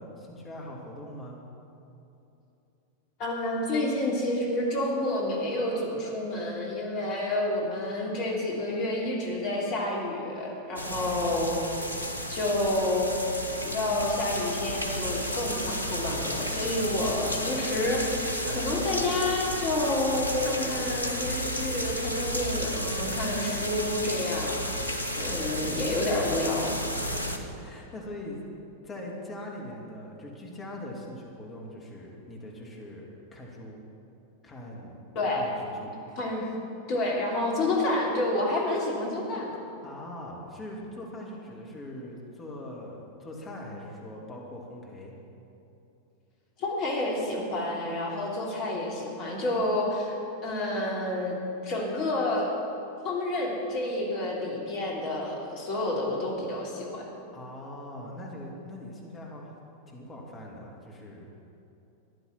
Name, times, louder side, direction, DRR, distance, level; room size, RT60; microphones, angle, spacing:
voice 1, 0.0-1.4 10.9-11.2 16.6-16.9 27.0-28.4 28.8-33.8 34.4-35.0 35.3-36.0 39.8-45.2 57.3-59.5 59.9-61.5, left 1 dB, 20° left, -2 dB, 2.7 m, -42 dB
voice 2, 3.2-11.5 12.3-13.3 13.6-26.7 35.1-35.5 36.2-36.5 36.9-39.5 46.6-50.1 50.4-51.4 51.6-52.5 53.0-57.1, left 1 dB, 40° left, -2 dB, 3.2 m, -29 dB
sound 1, 10.8-27.4, equal, 85° right, 1.0 m, -32 dB
14.0 x 10.5 x 6.0 m, 2.8 s
figure-of-eight pair, 90°, 0 cm